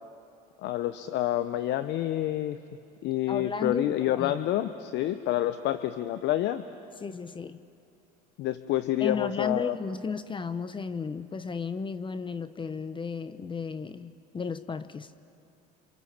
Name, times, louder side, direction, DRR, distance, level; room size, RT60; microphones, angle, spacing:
voice 1, 0.6-2.6 3.0-6.6 8.4-9.8, left 13 dB, 60° left, 11 dB, 0.9 m, -28 dB
voice 2, 3.3-4.5 7.0-7.6 9.0-15.1, left 5 dB, 25° left, 13 dB, 0.9 m, -34 dB
29.5 x 27.0 x 7.4 m, 2.6 s
supercardioid pair, 90°, 20 cm